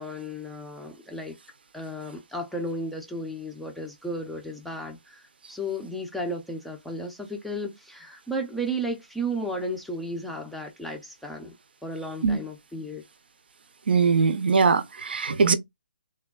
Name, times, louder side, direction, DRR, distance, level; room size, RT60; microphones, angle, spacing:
voice 1, 0.0-1.4 1.7-11.5 11.8-13.0, right 1 dB, ahead, 0.4 m, -34 dB
voice 2, 13.9-15.6, right 5 dB, 75° right, 0.5 m, -21 dB
3.3 x 2.2 x 2.2 m
hypercardioid pair, 160°, 6 cm